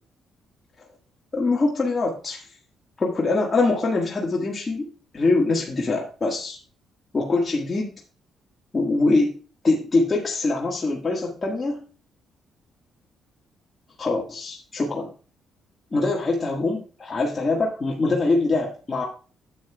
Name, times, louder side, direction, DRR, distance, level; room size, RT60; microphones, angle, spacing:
voice 1, 1.3-2.4 3.0-4.9 5.1-6.6 7.1-7.9 8.7-9.4 9.6-11.8 14.0-15.1 15.9-19.1, left 3 dB, 30° left, -2 dB, 1.6 m, -23 dB
10.0 x 7.6 x 2.3 m, 0.37 s
cardioid pair, 90°, 0 cm